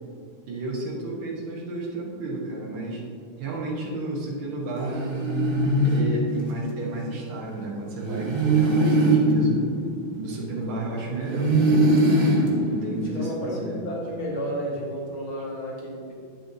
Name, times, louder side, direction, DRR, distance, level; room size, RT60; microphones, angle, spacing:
voice 1, 0.5-3.0 3.4-5.2 5.8-9.6 10.2-11.9 12.6-13.9, right 2 dB, 85° right, -4 dB, 2.2 m, -32 dB
sound 1, 4.8-6.9 8.0-10.7 11.2-13.5, right 1 dB, 50° right, 0.6 m, -22 dB
voice 2, 13.0-16.1, equal, 75° left, -3 dB, 2.3 m, -32 dB
9.5 x 7.9 x 2.7 m, 2.2 s
omnidirectional pair, 2.3 m